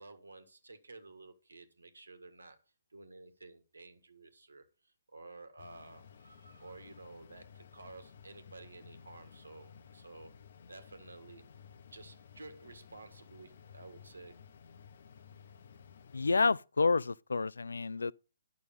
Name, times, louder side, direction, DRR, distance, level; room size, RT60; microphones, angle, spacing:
voice 1, 0.0-2.6 2.9-10.4 10.7-11.5 11.9-14.4, right 3 dB, 90° right, 1.7 m, -52 dB
sound 1, 5.6-16.5, left 7 dB, 60° left, 0.9 m, -56 dB
voice 2, 16.1-18.1, left 4 dB, 85° left, 0.4 m, -29 dB
9.6 x 6.2 x 5.2 m
hypercardioid pair, 135°, 0 cm